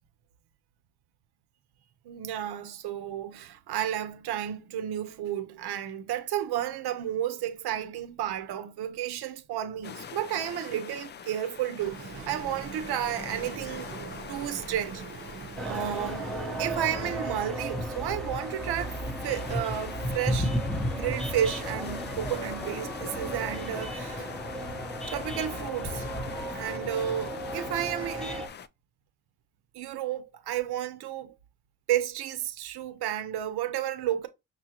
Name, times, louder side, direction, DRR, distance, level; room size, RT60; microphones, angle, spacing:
voice 1, 2.0-15.0 15.6-16.3 16.6-20.5 20.9-24.3 25.1-26.1 26.5-28.5 29.7-31.3 31.9-34.3, right 11 dB, 65° right, 0.9 m, -32 dB
sound 1, 9.8-28.7, left 7 dB, 30° left, 0.4 m, -43 dB
Boat Water vehicle, 11.8-17.2, right 6 dB, 30° right, 0.8 m, -42 dB
sound 2, 15.6-28.5, equal, ahead, 0.9 m, -34 dB
5.5 x 2.5 x 2.9 m
cardioid pair, 90°, 41 cm